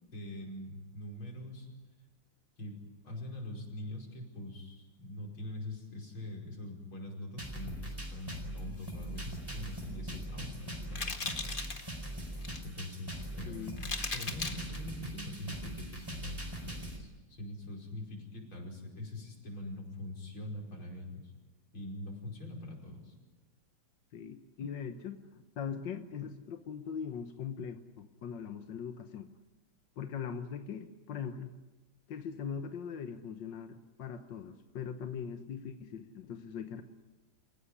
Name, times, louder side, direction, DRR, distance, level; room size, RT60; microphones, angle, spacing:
voice 1, 0.1-1.7 2.6-2.8 3.0-11.5 11.8-11.9 12.6-13.9 14.1-21.3 21.7-23.2, left 1 dB, 80° left, 0 dB, 6.1 m, -43 dB
sound 1, 7.4-17.0, right 1 dB, 10° right, 4.5 m, -41 dB
sound 2, 10.9-11.8 12.2-12.6 13.2-13.3 13.8-14.8, left 3 dB, 25° left, 1.7 m, -37 dB
voice 2, 13.4-13.8 24.1-25.2 25.6-29.3 30.0-31.5 32.1-36.8, left 7 dB, 65° left, 7 dB, 1.7 m, -41 dB
28.0 x 16.0 x 9.9 m, 1.2 s
omnidirectional pair, 2.2 m